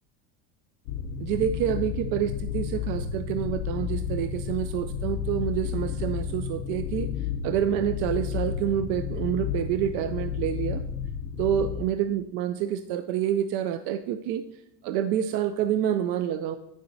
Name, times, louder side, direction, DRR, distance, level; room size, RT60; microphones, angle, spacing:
sound 1, 0.9-11.8, left 8 dB, 70° left, 0.6 m, -32 dB
voice 1, 1.2-10.8 11.4-14.4 14.8-16.6, right 10 dB, 65° right, 11 dB, 0.4 m, -28 dB
9.6 x 7.2 x 2.6 m, 0.84 s
cardioid pair, 175°, 34 cm